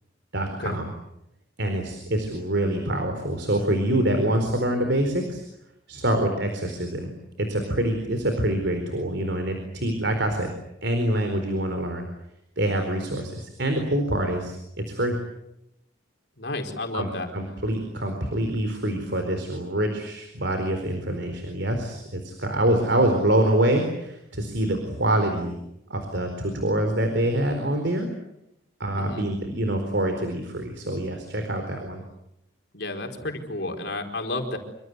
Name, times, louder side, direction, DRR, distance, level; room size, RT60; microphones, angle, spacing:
voice 1, 0.3-0.9 1.6-5.4 5.9-7.1 7.4-10.5 10.8-12.0 12.6-14.6 14.9-15.2 16.9-25.6 25.9-28.1 28.8-32.0, right 1 dB, 65° right, 5 dB, 4.4 m, -25 dB
voice 2, 16.4-17.3 29.0-29.3 32.7-34.6, left 2 dB, 60° left, 4 dB, 4.6 m, -31 dB
27.0 x 25.5 x 8.2 m, 0.84 s
head